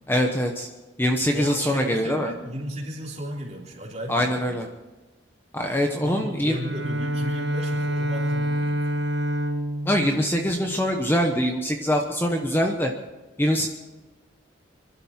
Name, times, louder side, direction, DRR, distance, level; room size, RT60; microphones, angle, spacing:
voice 1, 0.1-0.7 1.0-2.3 4.1-4.7 5.5-6.6 9.8-12.9 13.4-13.7, equal, 10° left, 2 dB, 1.0 m, -23 dB
voice 2, 1.3-4.6 6.0-9.0, right 1 dB, 35° right, -2 dB, 3.5 m, -35 dB
Bowed string instrument, 6.5-11.4, right 1 dB, 55° right, 1.7 m, -28 dB
26.0 x 12.0 x 4.5 m, 1.2 s
head